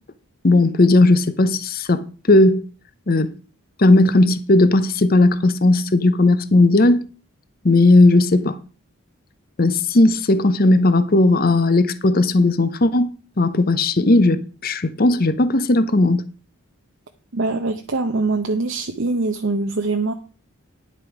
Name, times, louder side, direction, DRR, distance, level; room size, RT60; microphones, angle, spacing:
voice 1, 0.4-2.6 3.1-3.3 3.8-7.0 7.6-8.6 9.6-16.2, left 2 dB, 40° left, 0.8 m, -16 dB
voice 2, 17.3-20.1, right 3 dB, 60° right, 0.7 m, -23 dB
10.5 x 7.6 x 4.8 m
head